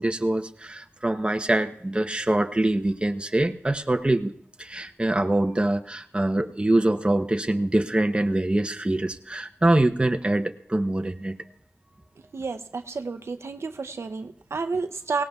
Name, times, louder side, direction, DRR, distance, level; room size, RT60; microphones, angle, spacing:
voice 1, 0.0-4.3 4.6-11.4, right 1 dB, 25° right, 7 dB, 0.8 m, -24 dB
voice 2, 12.3-15.2, right 4 dB, 85° right, 7 dB, 0.6 m, -31 dB
24.0 x 18.0 x 2.4 m, 0.65 s
wide cardioid pair, 65°, 4 cm